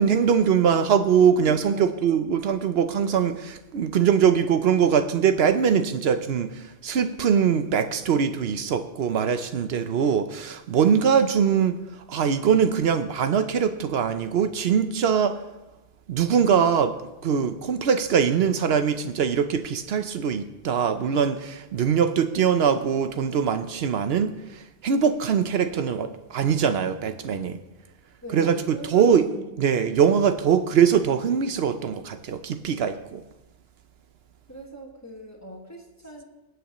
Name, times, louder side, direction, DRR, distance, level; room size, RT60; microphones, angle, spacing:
voice 1, 0.0-11.8 12.1-15.4 16.1-17.0 17.2-24.3 24.8-27.6 28.3-29.2 29.6-33.2, right 7 dB, 80° right, 10 dB, 0.9 m, -22 dB
voice 2, 1.4-2.1 28.2-29.5 34.5-36.2, equal, 15° left, -1 dB, 1.7 m, -41 dB
24.0 x 7.9 x 3.0 m, 1.0 s
omnidirectional pair, 1.0 m